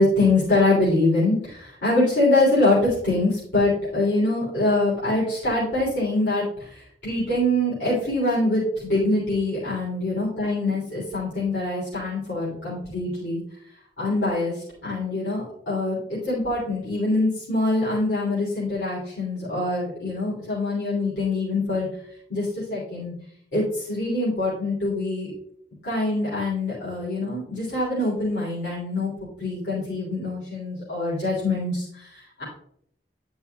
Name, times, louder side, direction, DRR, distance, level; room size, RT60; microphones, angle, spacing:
voice 1, 0.0-13.4 14.0-21.9 22.3-23.1 23.5-25.3 25.8-29.1 29.4-32.4, left 2 dB, 90° left, -8 dB, 3.1 m, -24 dB
10.5 x 5.5 x 2.3 m, 0.69 s
head